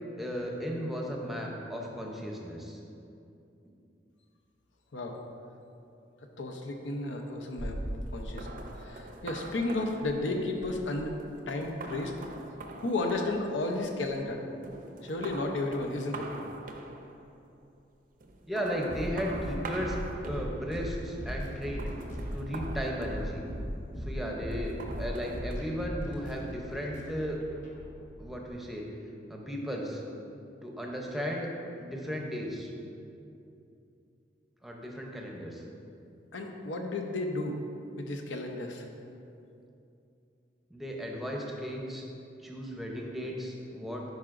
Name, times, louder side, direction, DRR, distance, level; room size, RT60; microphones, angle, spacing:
voice 1, 0.2-2.8 18.5-20.0 20.2-21.9 22.3-23.4 24.0-27.4 28.2-28.8 29.3-30.0 30.6-31.5 31.8-32.7 34.6-35.6 40.7-42.0 42.4-44.1, equal, ahead, -1 dB, 0.6 m, -35 dB
voice 2, 6.4-7.8 8.1-11.2 11.5-12.1 12.8-14.4 15.0-16.3 36.3-37.6 38.0-38.9, left 2 dB, 90° left, 3 dB, 0.7 m, -33 dB
sound 1, 7.6-14.3 14.6-17.4 18.2-20.9 21.6-23.8 24.5-25.6, right 2 dB, 45° right, 0.5 m, -43 dB
sound 2, 18.9-28.5, equal, 45° left, 1.0 m, -38 dB
10.5 x 4.8 x 2.5 m, 2.7 s
head